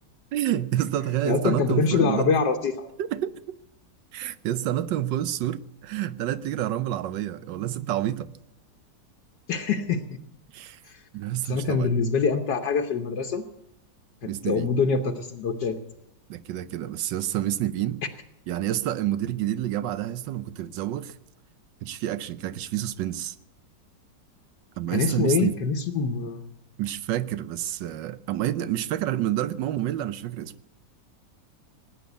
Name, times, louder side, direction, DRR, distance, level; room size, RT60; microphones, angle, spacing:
voice 1, 0.3-2.3 3.0-3.6 4.1-8.3 10.5-10.8 11.1-11.9 14.2-14.7 16.3-18.0 18.5-21.1 21.8-23.3 24.8-25.6 26.8-30.5, right 12 dB, 85° right, 1.4 m, -28 dB
voice 2, 1.2-2.9 9.5-10.2 10.9-11.0 11.4-13.5 14.2-15.8 24.9-26.5, left 5 dB, 75° left, 1.6 m, -25 dB
18.5 x 9.5 x 8.1 m
omnidirectional pair, 1.9 m